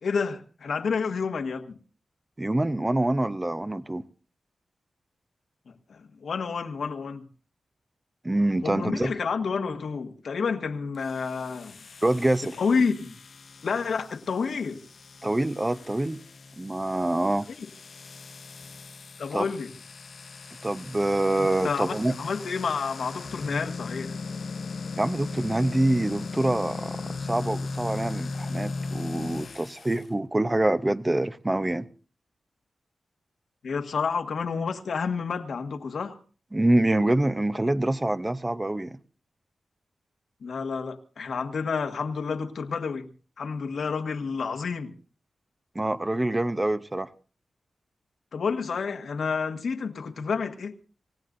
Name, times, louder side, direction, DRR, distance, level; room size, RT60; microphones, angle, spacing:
voice 1, 0.0-1.8 5.7-7.3 8.6-11.8 12.6-13.1 13.6-14.8 17.6-17.7 19.2-19.7 21.4-24.1 33.6-36.2 40.4-43.1 43.4-44.9 48.3-50.8, left 5 dB, 80° left, 1.5 m, -29 dB
voice 2, 2.4-4.1 8.2-9.1 12.0-12.5 15.2-16.2 16.6-17.5 19.3-19.5 20.6-22.1 25.0-31.9 36.5-39.0 45.7-47.1, right 1 dB, 15° right, 0.7 m, -25 dB
sound 1, 10.9-30.1, left 3 dB, 60° left, 0.7 m, -38 dB
27.5 x 17.0 x 2.6 m
wide cardioid pair, 145°, 0 cm